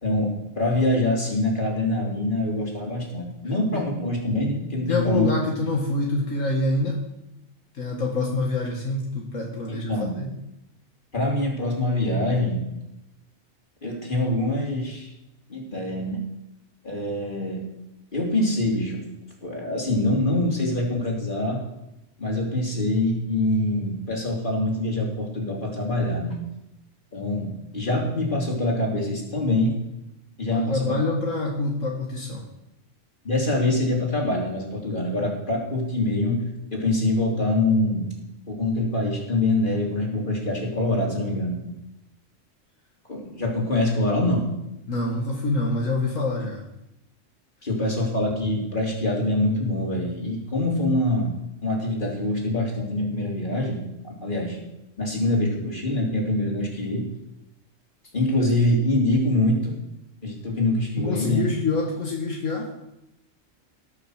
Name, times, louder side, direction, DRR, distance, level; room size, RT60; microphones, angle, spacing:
voice 1, 0.0-5.3 9.7-10.2 11.1-12.6 13.8-15.1 15.5-16.2 16.8-17.6 18.1-19.0 19.4-21.6 22.2-26.3 27.1-29.8 30.4-31.0 33.3-38.1 38.5-41.6 43.1-44.5 47.6-51.3 51.6-54.6 55.0-57.1 58.1-59.7 60.2-61.4, left 1 dB, 40° left, -1 dB, 3.4 m, -24 dB
voice 2, 4.9-7.0 7.7-10.3 30.5-32.4 44.9-46.6 61.0-62.7, left 2 dB, 75° left, -1 dB, 2.0 m, -26 dB
19.5 x 6.6 x 6.4 m, 0.87 s
omnidirectional pair, 1.4 m